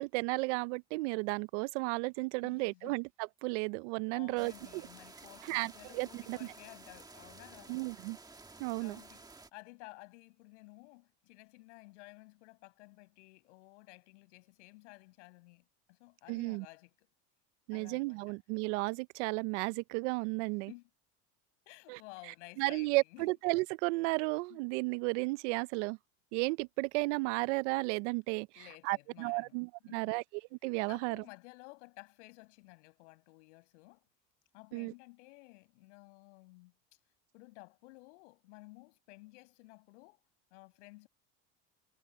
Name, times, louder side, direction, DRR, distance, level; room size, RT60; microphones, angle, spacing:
voice 1, 0.0-3.1 3.4-4.9 5.5-6.4 7.7-8.2 8.6-9.0 16.3-16.7 17.7-20.7 21.9-22.0 22.6-26.0 26.3-30.2 30.6-31.2 34.7-34.9, right 26 dB, 85° right, 0.6 m, -33 dB
voice 2, 2.4-3.0 4.1-7.8 8.8-9.3 9.5-17.1 17.7-18.3 20.4-20.9 21.7-23.4 24.5-24.6 28.6-29.5 29.9-30.1 30.9-34.1 34.5-36.7 37.3-40.2 40.5-41.1, left 24 dB, 90° left, 7.3 m, -54 dB
sound 1, 4.4-9.5, right 3 dB, 10° right, 1.7 m, -53 dB
cardioid pair, 130°, 34 cm